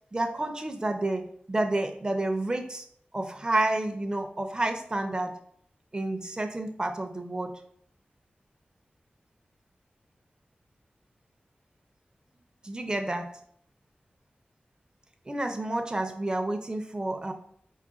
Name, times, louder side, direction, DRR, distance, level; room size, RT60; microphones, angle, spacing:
voice 1, 0.1-2.8 3.1-5.4 5.9-7.5 12.6-13.3 15.3-17.3, right 2 dB, 25° right, 5 dB, 0.4 m, -30 dB
4.4 x 2.3 x 3.7 m, 0.65 s
wide cardioid pair, 65°, 3 cm